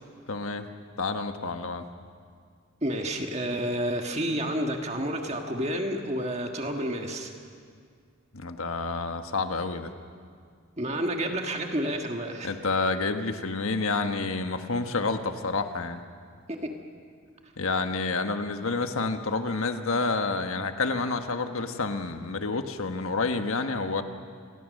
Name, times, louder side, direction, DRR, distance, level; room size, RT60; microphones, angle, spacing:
voice 1, 0.3-0.7 1.0-1.8 8.3-9.9 12.4-16.0 17.6-24.0, left 3 dB, 75° left, 7 dB, 1.4 m, -29 dB
voice 2, 2.8-7.3 10.8-12.5 16.5-16.7, right 1 dB, 30° right, 3 dB, 1.6 m, -30 dB
28.5 x 20.5 x 6.5 m, 2.1 s
head